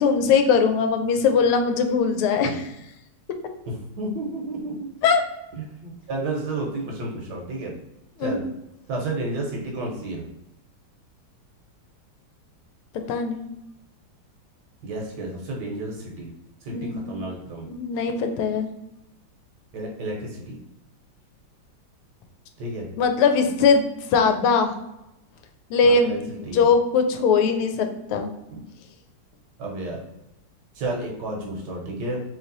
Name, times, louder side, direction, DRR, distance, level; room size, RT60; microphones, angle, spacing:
voice 1, 0.0-2.7 5.0-5.2 8.2-8.4 13.1-13.4 16.7-17.0 17.7-18.7 23.0-23.8 24.1-24.7 25.7-28.3, left 5 dB, 85° left, 6 dB, 1.5 m, -20 dB
voice 2, 3.7-4.9 5.5-7.7 8.2-8.4 8.9-10.3 14.8-16.3 16.6-17.7 19.7-20.6 22.6-22.9 25.8-26.7 28.5-28.6 29.6-30.0 30.7-32.2, right 2 dB, 65° right, -1 dB, 1.2 m, -31 dB
3.2 x 3.1 x 3.8 m, 0.88 s
omnidirectional pair, 2.3 m